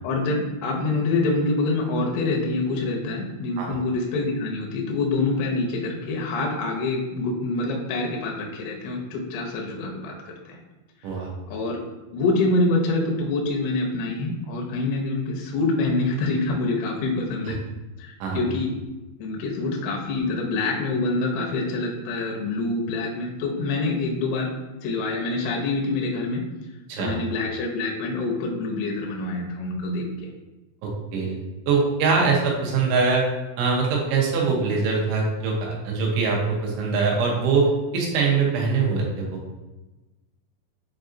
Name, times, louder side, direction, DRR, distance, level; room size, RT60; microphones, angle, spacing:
voice 1, 0.0-10.6 11.5-11.8 12.1-17.6 18.0-18.7 19.2-24.5 24.8-26.4 27.0-30.3, left 2 dB, 80° left, 0 dB, 2.4 m, -26 dB
voice 2, 30.8-33.2 33.6-39.4, right 4 dB, 90° right, -2 dB, 3.2 m, -23 dB
7.2 x 2.5 x 2.6 m, 1.1 s
omnidirectional pair, 5.2 m